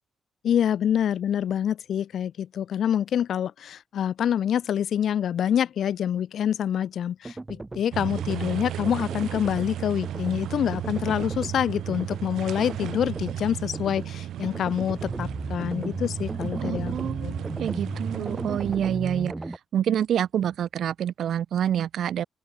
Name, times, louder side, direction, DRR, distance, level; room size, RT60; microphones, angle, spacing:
voice 1, 0.4-16.9 17.2-17.3, left 9 dB, 70° left, 5.8 m, -26 dB
sound 1, 7.2-7.8 8.2-8.5 8.9-9.7 10.0-10.4 10.7-11.5 11.9-12.2 12.6-13.4 13.7-14.1 14.4-19.6, right 2 dB, 15° right, 5.0 m, -35 dB
sound 2, 7.9-18.8, right 11 dB, 85° right, 3.8 m, -34 dB
voice 2, 16.6-19.3 19.7-22.2, right 9 dB, 70° right, 1.6 m, -27 dB
open air
cardioid pair, 125°, 0 cm